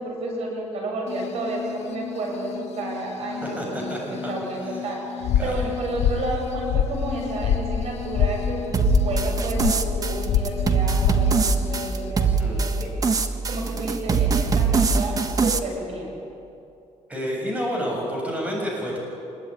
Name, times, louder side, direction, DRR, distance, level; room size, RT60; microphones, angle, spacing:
voice 1, 0.0-16.2, right 2 dB, 55° right, 0 dB, 7.9 m, -31 dB
sound 1, 1.1-12.1, left 9 dB, 60° left, 1.7 m, -37 dB
voice 2, 3.6-4.2 5.4-5.7 12.2-12.6 17.1-19.0, equal, 10° right, -2 dB, 7.2 m, -29 dB
sound 2, 5.2-11.6, left 8 dB, 90° left, 1.5 m, -25 dB
sound 3, 8.7-15.6, right 5 dB, 30° right, 1.4 m, -23 dB
26.5 x 21.0 x 10.0 m, 2.7 s
cardioid pair, 145°, 12 cm